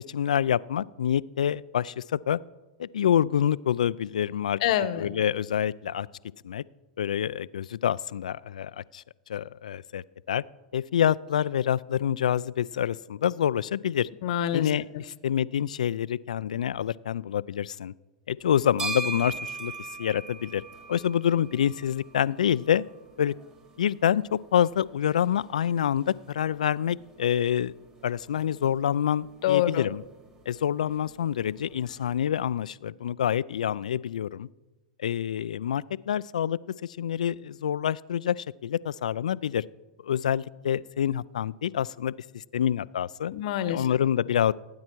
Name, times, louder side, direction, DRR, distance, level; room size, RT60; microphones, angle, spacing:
voice 1, 0.0-2.4 2.8-4.6 5.0-6.1 6.4-6.6 7.0-9.0 9.3-10.4 10.7-14.1 14.5-14.9 15.2-17.9 18.3-19.7 20.0-20.6 20.9-22.8 23.2-23.3 23.8-27.7 28.0-30.0 30.5-34.5 35.0-36.6 37.0-39.6 40.0-43.3 43.7-44.5, left 9 dB, 80° left, 20 dB, 0.3 m, -27 dB
voice 2, 4.6-5.1 14.2-15.0 29.4-29.9 43.3-43.9, left 11 dB, 60° left, 14 dB, 0.9 m, -27 dB
sound 1, 18.4-32.3, right 4 dB, 25° right, 3.5 m, -42 dB
16.5 x 9.5 x 4.6 m, 1.1 s
hypercardioid pair, 110°, 4 cm